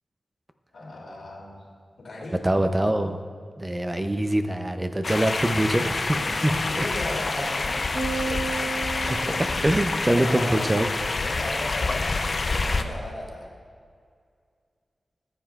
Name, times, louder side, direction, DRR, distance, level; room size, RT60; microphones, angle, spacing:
voice 1, 0.7-1.7 2.0-2.4 6.1-8.0 10.0-10.7 11.1-12.2 12.5-13.5, left 2 dB, 80° left, -3 dB, 2.1 m, -36 dB
voice 2, 2.4-3.2 3.6-6.9 9.1-10.9, right 1 dB, 20° right, 7 dB, 0.5 m, -24 dB
sound 1, 5.0-12.8, left 3 dB, 50° left, 0.4 m, -27 dB
sound 2, 7.9-10.5, right 4 dB, 60° right, 1.2 m, -34 dB
14.5 x 7.6 x 2.3 m, 2.2 s
wide cardioid pair, 95°, 0 cm